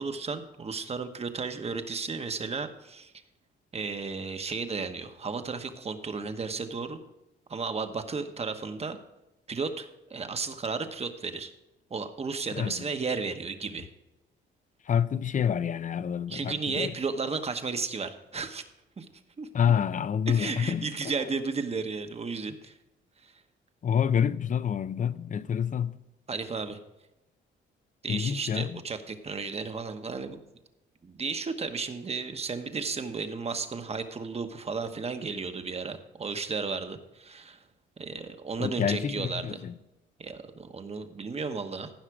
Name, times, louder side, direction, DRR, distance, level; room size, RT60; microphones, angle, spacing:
voice 1, 0.0-3.1 3.7-7.0 7.5-9.0 9.5-11.5 11.9-13.9 16.3-18.6 19.0-19.1 19.4-19.5 20.3-22.7 23.2-23.3 26.3-26.8 28.0-30.4 31.0-37.6 38.0-39.5 40.2-41.9, right 4 dB, 30° right, 1.1 m, -34 dB
voice 2, 12.5-12.9 14.8-16.9 19.5-21.1 23.8-26.0 28.1-28.8 38.6-39.8, left 8 dB, 40° left, 0.6 m, -28 dB
15.0 x 5.8 x 4.8 m
cardioid pair, 90°, 20 cm